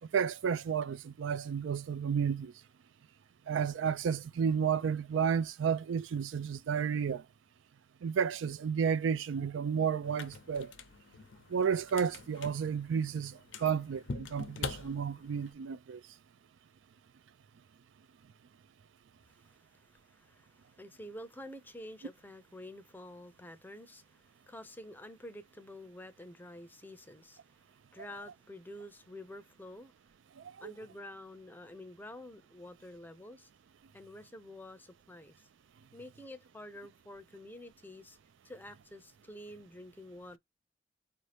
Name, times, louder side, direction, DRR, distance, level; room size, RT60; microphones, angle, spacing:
voice 1, 0.1-2.5 3.5-7.2 8.0-10.7 11.5-16.0 30.4-30.7, right 7 dB, 85° right, 0.4 m, -32 dB
sound 1, 10.0-15.5, left 4 dB, 80° left, 0.6 m, -45 dB
voice 2, 19.3-27.6 27.9-29.9 30.6-33.5 33.9-35.5 35.9-38.2 38.4-40.4, left 1 dB, 10° left, 0.5 m, -49 dB
4.4 x 2.7 x 3.3 m
head